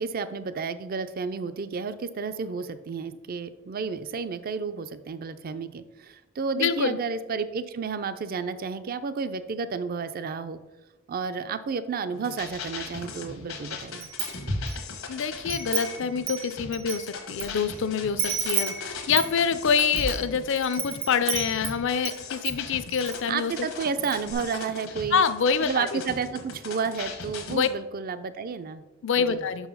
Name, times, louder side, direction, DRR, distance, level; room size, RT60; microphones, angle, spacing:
voice 1, 0.0-10.6 11.1-14.1 23.3-25.2 25.6-28.8 29.2-29.5, right 5 dB, 45° right, 12 dB, 0.4 m, -31 dB
voice 2, 6.6-7.0 15.1-23.5 25.1-26.0 27.5-27.7 29.0-29.7, left 6 dB, 65° left, 13 dB, 0.5 m, -26 dB
sound 1, 12.1-27.7, left 4 dB, 85° left, 1.1 m, -39 dB
Wind chime, 14.0-14.8 15.2-17.5 17.7-17.8 18.2-22.2 22.4-23.2 23.5-23.6 23.9-24.3, right 5 dB, 70° right, 1.0 m, -31 dB
5.7 x 4.8 x 5.4 m, 1.2 s
head